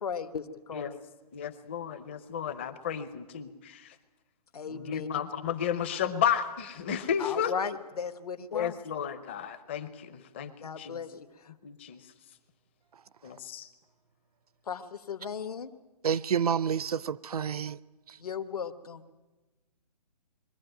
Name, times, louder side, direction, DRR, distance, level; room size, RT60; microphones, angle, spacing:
voice 1, 0.0-1.0 4.5-5.1 7.2-8.8 10.6-11.1 11.4-11.5 14.7-15.7 18.2-19.1, left 6 dB, 65° left, 1.3 m, -36 dB
voice 2, 1.3-4.0 4.7-7.5 8.5-11.0 11.6-12.0 13.2-13.7, left 8 dB, 15° left, 0.6 m, -33 dB
voice 3, 16.0-17.8, right 7 dB, 65° right, 0.6 m, -29 dB
22.0 x 14.5 x 9.0 m
hypercardioid pair, 170°, 21 cm